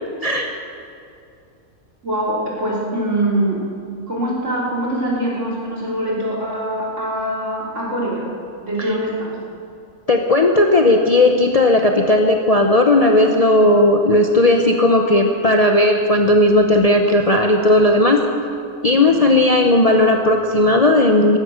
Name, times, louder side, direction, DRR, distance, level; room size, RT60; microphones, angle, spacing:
voice 1, 2.0-3.6 4.1-8.3 8.6-9.3, right 1 dB, 60° right, -4 dB, 3.5 m, -23 dB
voice 2, 10.1-18.2 18.8-21.4, left 1 dB, 35° left, 3 dB, 0.7 m, -15 dB
14.0 x 12.5 x 6.4 m, 2.5 s
omnidirectional pair, 1.5 m